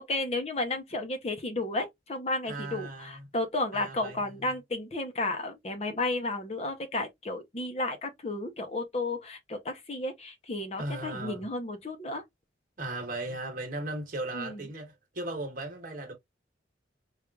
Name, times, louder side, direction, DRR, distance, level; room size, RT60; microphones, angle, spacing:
voice 1, 0.0-12.2 14.3-14.7, left 2 dB, 35° left, 0.7 m, -33 dB
voice 2, 2.5-3.3 3.7-4.4 10.8-11.4 12.8-16.1, right 2 dB, 50° right, 1.2 m, -37 dB
4.5 x 2.4 x 2.3 m
head